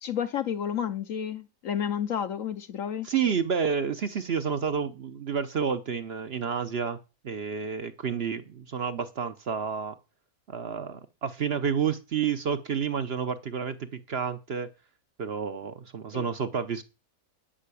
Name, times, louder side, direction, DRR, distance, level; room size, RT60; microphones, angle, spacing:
voice 1, 0.0-3.1 16.1-16.3, left 9 dB, 70° left, 1.1 m, -31 dB
voice 2, 3.0-7.0 7.2-10.0 10.5-14.7 15.2-16.8, right 6 dB, 50° right, 0.9 m, -30 dB
10.0 x 5.6 x 8.3 m
omnidirectional pair, 1.5 m